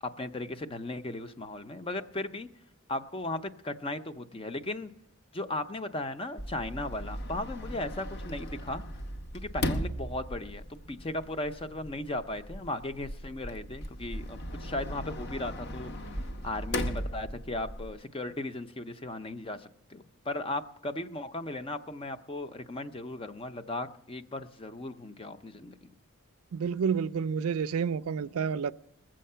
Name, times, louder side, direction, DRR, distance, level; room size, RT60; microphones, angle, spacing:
voice 1, 0.0-2.5 2.9-4.9 5.3-8.8 9.3-15.9 16.4-25.9, left 2 dB, 25° left, 0.6 m, -36 dB
Sliding door, 6.4-17.9, equal, 50° left, 0.9 m, -38 dB
voice 2, 26.5-28.7, right 6 dB, 75° right, 0.4 m, -29 dB
21.0 x 7.6 x 5.6 m
head